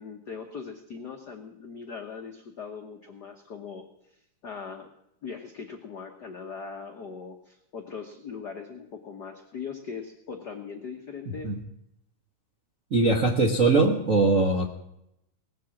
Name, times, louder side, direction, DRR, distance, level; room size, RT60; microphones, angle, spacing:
voice 1, 0.0-4.9 5.2-11.5, left 5 dB, 65° left, 4 dB, 1.0 m, -40 dB
voice 2, 12.9-14.7, right 3 dB, 50° right, 0 dB, 0.9 m, -21 dB
19.5 x 7.8 x 7.2 m, 0.79 s
omnidirectional pair, 3.5 m